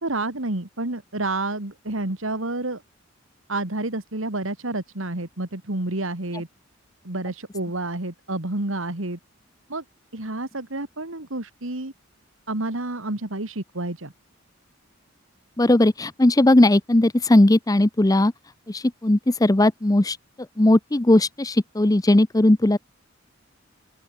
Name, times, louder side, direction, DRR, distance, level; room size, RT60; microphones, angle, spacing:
voice 1, 0.0-2.8 3.5-6.5 7.0-9.2 9.7-9.8 10.1-11.9 12.5-14.1, right 2 dB, 85° right, 2.7 m, -29 dB
voice 2, 15.6-18.3 18.7-20.2 20.6-22.8, left 1 dB, 20° left, 0.7 m, -18 dB
open air
head